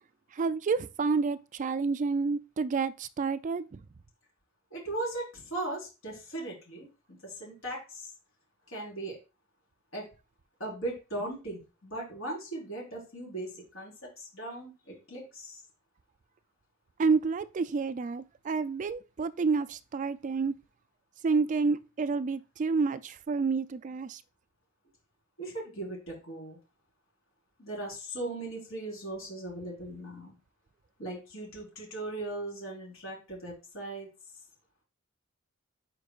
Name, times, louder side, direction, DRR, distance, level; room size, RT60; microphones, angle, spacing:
voice 1, 0.4-3.8 17.0-20.5 21.2-24.2, right 4 dB, 35° right, 0.3 m, -29 dB
voice 2, 4.7-8.1 8.7-9.2 9.9-10.1 10.6-15.6 25.4-26.6 27.6-30.3 31.0-34.1, right 2 dB, 70° left, 4.2 m, -38 dB
9.9 x 4.6 x 2.4 m
head